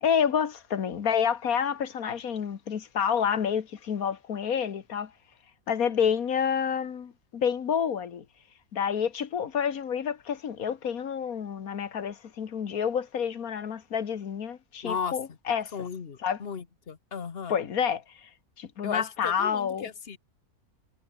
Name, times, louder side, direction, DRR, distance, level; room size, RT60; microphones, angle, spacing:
voice 1, 0.0-5.1 5.7-8.3 8.7-15.7 16.2-16.4 17.5-18.3 18.6-19.9, left 7 dB, 75° left, 1.8 m, -28 dB
voice 2, 14.8-15.2 15.7-17.6 18.8-20.2, left 6 dB, 45° left, 1.5 m, -35 dB
omnidirectional pair, 1.5 m